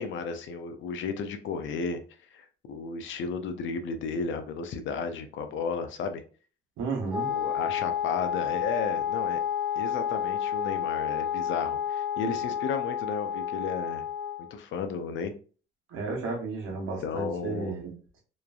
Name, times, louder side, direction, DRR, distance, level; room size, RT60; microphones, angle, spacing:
voice 1, 0.0-2.0 2.3-6.2 7.3-9.4 9.8-14.0 14.5-15.3 17.0-17.7, left 5 dB, 75° left, 8 dB, 0.5 m, -33 dB
voice 2, 6.8-7.3 15.9-18.2, right 4 dB, 85° right, 0 dB, 0.9 m, -33 dB
Wind instrument woodwind instrument, 7.1-14.5, left 9 dB, 5° right, 0.4 m, -30 dB
3.1 x 2.4 x 2.3 m, 0.38 s
cardioid pair, 90°, 20 cm